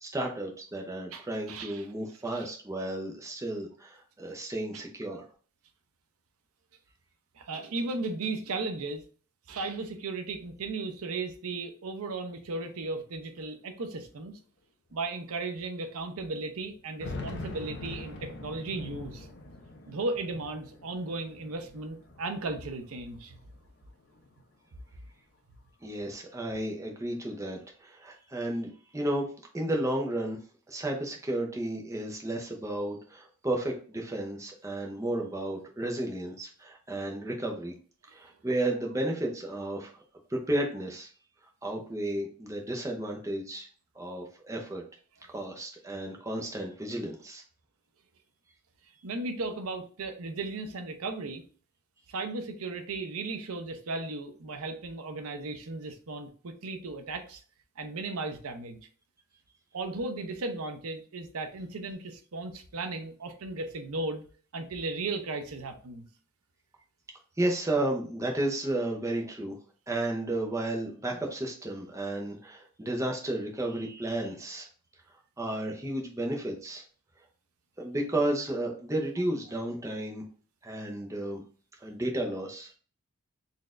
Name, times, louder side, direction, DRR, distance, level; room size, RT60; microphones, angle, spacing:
voice 1, 0.0-5.2 25.8-29.3 29.5-30.4 30.7-37.7 38.1-40.0 40.3-41.1 41.6-43.7 43.9-44.8 45.3-47.4 67.4-69.6 69.9-74.7 75.4-76.8 77.8-80.2 80.6-81.4 81.8-82.7, right 1 dB, 15° right, 0 dB, 0.6 m, -33 dB
voice 2, 1.1-1.9 2.3-2.5 4.7-5.3 7.4-9.0 9.5-14.4 14.9-19.3 19.9-23.4 49.0-51.4 52.1-57.4 57.8-58.8 59.7-64.2 64.5-66.1, right 3 dB, 75° right, 7 dB, 0.6 m, -36 dB
sound 1, 13.1-13.2 13.4-13.5 14.3-14.4 14.9-15.0 16.6-23.0 23.4-24.4, left 2 dB, 50° left, 0.7 m, -43 dB
4.1 x 3.2 x 2.4 m, 0.41 s
head